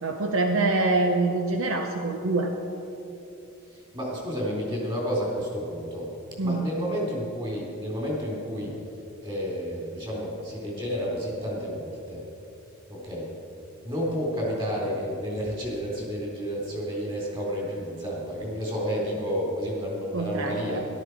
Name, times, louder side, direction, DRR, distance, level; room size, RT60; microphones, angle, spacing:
voice 1, 0.0-2.5 6.4-6.7 20.1-20.9, right 2 dB, 65° right, 4 dB, 0.8 m, -25 dB
voice 2, 3.7-6.1 6.4-8.7 9.2-12.2 12.9-13.3 13.8-20.8, equal, 25° right, -4 dB, 3.6 m, -31 dB
13.5 x 12.0 x 4.7 m, 2.9 s
head